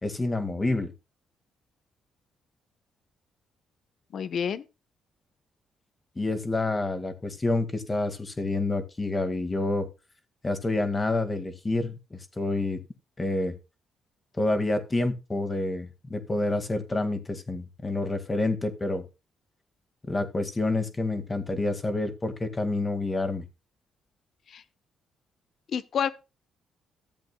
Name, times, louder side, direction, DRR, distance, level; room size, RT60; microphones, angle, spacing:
voice 1, 0.0-0.9 6.2-9.9 10.4-12.8 13.2-13.5 14.4-19.0 20.1-23.4, left 2 dB, 20° left, 1.8 m, -28 dB
voice 2, 4.1-4.6 24.5-24.6 25.7-26.1, left 7 dB, 60° left, 0.9 m, -29 dB
14.0 x 7.8 x 2.2 m
cardioid pair, 90°, 0 cm